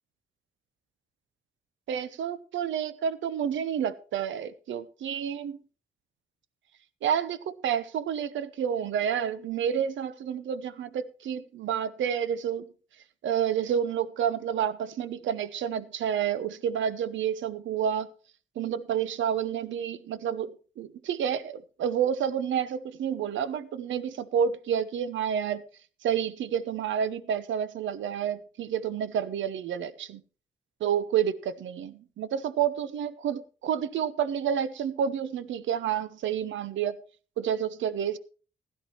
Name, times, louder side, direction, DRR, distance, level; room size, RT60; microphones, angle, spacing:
voice 1, 1.9-5.6 7.0-12.7 13.2-18.1 18.6-25.6 26.0-30.2 30.8-37.0 37.4-38.2, right 8 dB, 75° right, 0.8 m, -29 dB
16.0 x 11.5 x 3.0 m
supercardioid pair, 55°, 20 cm